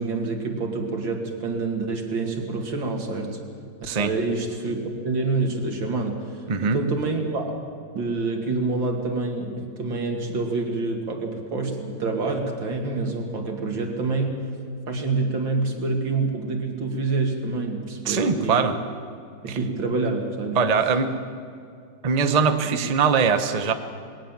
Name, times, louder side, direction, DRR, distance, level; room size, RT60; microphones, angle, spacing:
voice 1, 0.0-3.4 4.0-7.6 7.9-14.5 14.9-18.7 19.4-20.6 22.7-22.8, right 3 dB, 85° right, 2 dB, 3.1 m, -27 dB
voice 2, 6.5-6.8 18.1-18.8 19.5-19.6 20.6-21.2 22.0-23.7, right 5 dB, 30° right, 8 dB, 0.8 m, -22 dB
20.5 x 18.5 x 7.4 m, 2.4 s
omnidirectional pair, 2.0 m